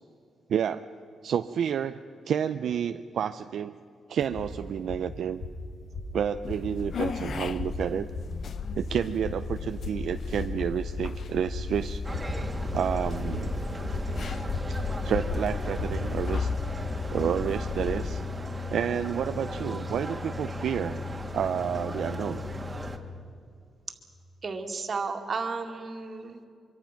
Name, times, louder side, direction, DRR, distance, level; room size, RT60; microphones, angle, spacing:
voice 1, 0.5-0.9 1.2-2.0 2.3-3.7 4.1-5.4 6.1-8.1 8.8-12.0 12.7-13.5 15.0-16.5 17.1-18.2 18.7-21.0 21.3-22.4, right 8 dB, 75° right, 9 dB, 0.5 m, -30 dB
sound 1, 4.2-16.1, left 2 dB, 75° left, 5.3 m, -37 dB
sound 2, 6.4-18.2, left 6 dB, 55° left, 0.7 m, -36 dB
sound 3, 12.0-23.0, left 1 dB, 20° right, 1.9 m, -35 dB
voice 2, 24.4-26.5, right 4 dB, 45° right, 4 dB, 2.2 m, -33 dB
24.5 x 24.0 x 5.9 m, 2.4 s
cardioid pair, 100°, 0 cm